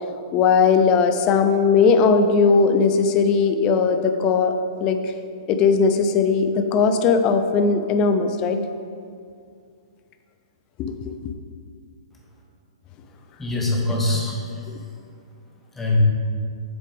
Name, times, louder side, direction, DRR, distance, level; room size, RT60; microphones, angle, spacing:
voice 1, 0.3-4.5 4.8-5.0 5.5-8.6 10.8-11.3, left 5 dB, 30° left, 8 dB, 0.6 m, -18 dB
voice 2, 13.4-14.6 15.7-16.0, left 2 dB, 10° left, -2 dB, 1.3 m, -23 dB
8.0 x 6.6 x 3.6 m, 2.3 s
figure-of-eight pair, 115°, 3 cm